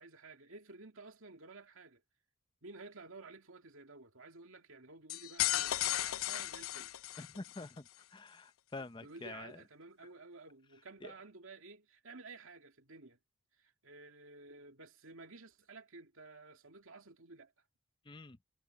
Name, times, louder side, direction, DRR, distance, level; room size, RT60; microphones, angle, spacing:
voice 1, 0.0-2.0 2.6-6.9 9.0-13.2 13.6-17.5, right 3 dB, 75° right, 2.5 m, -53 dB
sound 1, 5.1-7.6, left 13 dB, 90° left, 0.5 m, -35 dB
voice 2, 7.2-9.6 11.0-11.1 18.1-18.4, left 3 dB, 20° left, 0.6 m, -47 dB
head